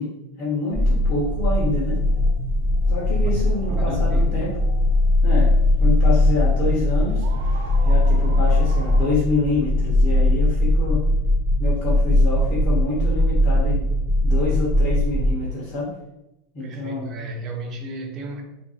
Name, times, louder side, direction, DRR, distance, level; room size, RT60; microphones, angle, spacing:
voice 1, 0.0-2.0 2.9-4.5 5.2-7.3 7.8-11.1 11.6-13.8 14.2-15.9 16.5-17.2, left 2 dB, 35° left, -7 dB, 1.0 m, -27 dB
sound 1, 0.7-15.3, left 1 dB, 20° left, 1.3 m, -19 dB
sound 2, 1.3-9.1, right 2 dB, 80° right, 0.9 m, -44 dB
voice 2, 3.7-4.6 16.6-18.4, right 2 dB, 35° right, 3 dB, 0.6 m, -33 dB
4.4 x 2.6 x 2.4 m, 0.91 s
supercardioid pair, 140°, 0 cm